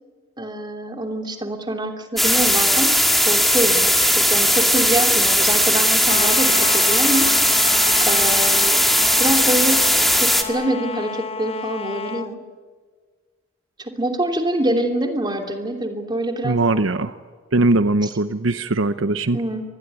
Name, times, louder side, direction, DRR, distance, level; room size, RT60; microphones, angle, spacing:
voice 1, 0.4-3.0 3.2-7.3 8.0-8.8 9.2-9.9 10.1-12.4 13.8-16.6 19.3-19.6, right 1 dB, 20° right, 4 dB, 2.9 m, -25 dB
sound 1, 2.2-10.4, equal, ahead, 2.0 m, -17 dB
sound 2, 6.1-12.3, left 5 dB, 30° left, 0.9 m, -31 dB
voice 2, 16.4-17.2 17.5-19.4, right 2 dB, 75° right, 11 dB, 0.9 m, -20 dB
25.0 x 20.0 x 9.5 m, 1.5 s
head